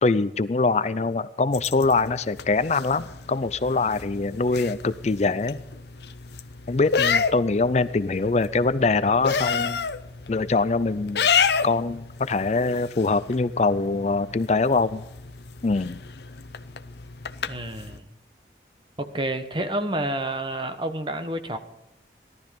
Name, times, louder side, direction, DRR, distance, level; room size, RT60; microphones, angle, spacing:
voice 1, 0.0-5.6 6.7-9.8 10.3-11.2 11.6-15.0 15.6-16.0, left 3 dB, 40° left, 15 dB, 0.4 m, -23 dB
sound 1, 1.5-18.0, left 6 dB, 70° left, 0.8 m, -30 dB
voice 2, 17.5-18.0 19.0-21.6, right 1 dB, 25° right, 8 dB, 1.1 m, -29 dB
17.5 x 12.5 x 5.3 m, 0.93 s
head